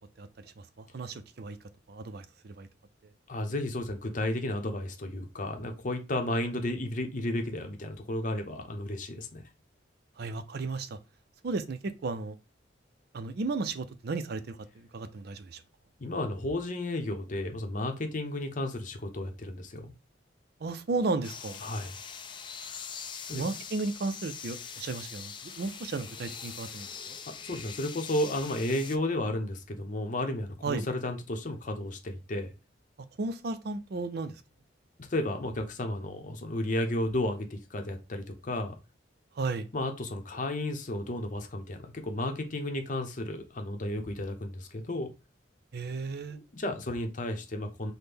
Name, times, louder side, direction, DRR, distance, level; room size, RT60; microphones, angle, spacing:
voice 1, 0.2-1.6 1.9-2.7 10.2-11.0 11.4-12.4 13.1-15.6 20.6-21.6 23.3-27.2 30.6-30.9 33.2-34.3 39.3-39.7 45.7-46.4, right 3 dB, 55° right, 0.4 m, -34 dB
voice 2, 3.3-9.4 16.0-19.9 21.6-21.9 23.3-23.4 27.4-32.5 35.1-38.7 39.7-45.1 46.3-47.9, left 1 dB, 45° left, 0.7 m, -33 dB
sound 1, 21.2-29.0, left 6 dB, 25° left, 0.4 m, -43 dB
5.9 x 2.1 x 3.4 m
head